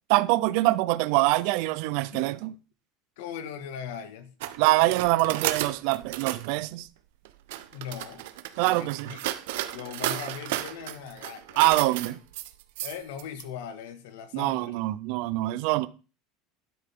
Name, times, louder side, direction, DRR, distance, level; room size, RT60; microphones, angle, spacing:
voice 1, 0.1-2.5 4.6-6.9 8.6-9.1 11.6-12.2 14.3-15.9, right 19 dB, 55° right, 0.6 m, -24 dB
voice 2, 3.2-4.3 7.7-8.2 8.5-9.2 9.7-11.6 12.8-14.8, left 8 dB, 80° left, 1.7 m, -39 dB
sound 1, 4.4-6.5 7.2-13.4, right 14 dB, 80° right, 1.0 m, -34 dB
12.5 x 10.0 x 3.7 m
cardioid pair, 180°, 0 cm